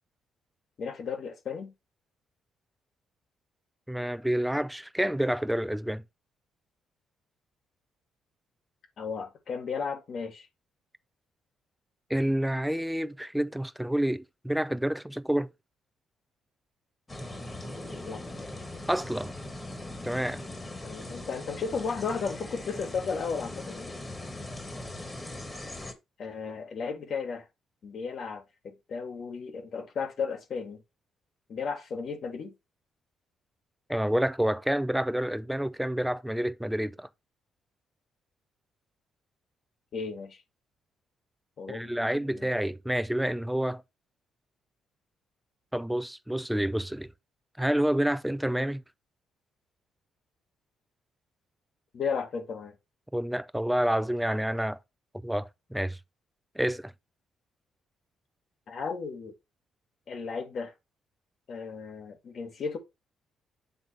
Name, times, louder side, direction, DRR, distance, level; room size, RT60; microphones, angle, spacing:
voice 1, 0.8-1.7 9.0-10.5 18.1-18.2 20.8-23.9 26.2-27.5 27.8-30.8 31.5-32.5 39.9-40.4 41.6-42.5 51.9-52.7 58.7-59.3 60.1-60.7 61.5-62.8, left 5 dB, 55° left, 2.0 m, -34 dB
voice 2, 3.9-6.0 12.1-15.5 18.9-19.3 20.0-20.4 33.9-37.1 41.7-43.8 45.7-47.1 47.6-48.8 53.1-54.8 55.2-56.0 56.6-56.9, right 1 dB, 5° right, 0.5 m, -28 dB
sound 1, 17.1-25.9, left 2 dB, 20° left, 1.7 m, -40 dB
7.9 x 3.7 x 4.5 m
cardioid pair, 90°, 0 cm